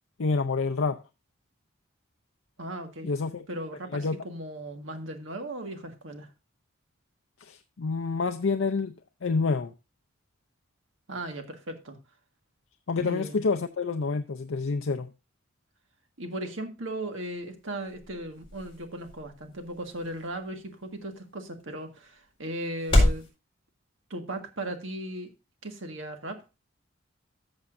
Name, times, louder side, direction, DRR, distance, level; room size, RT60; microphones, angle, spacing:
voice 1, 0.2-1.0 3.0-3.4 3.9-4.2 7.4-8.9 9.2-9.7 12.9-15.1, left 4 dB, 70° left, 0.6 m, -28 dB
voice 2, 2.6-3.1 3.5-6.3 11.1-12.0 13.0-13.4 16.2-23.2 24.1-25.3 25.6-26.4, right 1 dB, 70° right, 1.7 m, -37 dB
sound 1, 17.0-23.3, left 1 dB, 25° left, 4.2 m, -31 dB
14.0 x 7.1 x 2.6 m
head